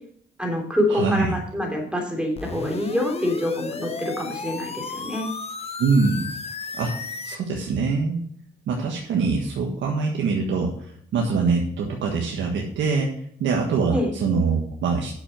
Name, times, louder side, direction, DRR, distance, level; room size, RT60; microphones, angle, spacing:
voice 1, 0.4-5.3 13.9-14.1, left 1 dB, 5° right, 1 dB, 3.2 m, -26 dB
voice 2, 0.9-1.3 5.8-6.3 6.7-6.9 7.2-8.2 8.7-13.1 13.4-15.1, right 4 dB, 70° right, 0 dB, 1.5 m, -23 dB
sound 1, 2.4-7.4, left 4 dB, 30° left, 1.0 m, -34 dB
8.8 x 6.8 x 5.8 m, 0.63 s
cardioid pair, 90°, 20 cm